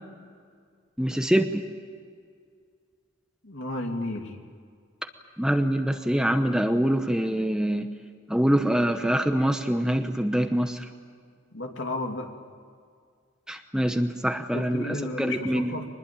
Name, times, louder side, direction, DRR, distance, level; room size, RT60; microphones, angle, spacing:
voice 1, 1.0-1.6 5.4-7.9 8.3-10.8 13.5-15.8, equal, 5° right, 6 dB, 0.9 m, -24 dB
voice 2, 3.4-4.3 11.5-12.3 14.5-15.9, left 2 dB, 65° left, 3 dB, 2.7 m, -33 dB
24.5 x 20.5 x 9.0 m, 2.1 s
head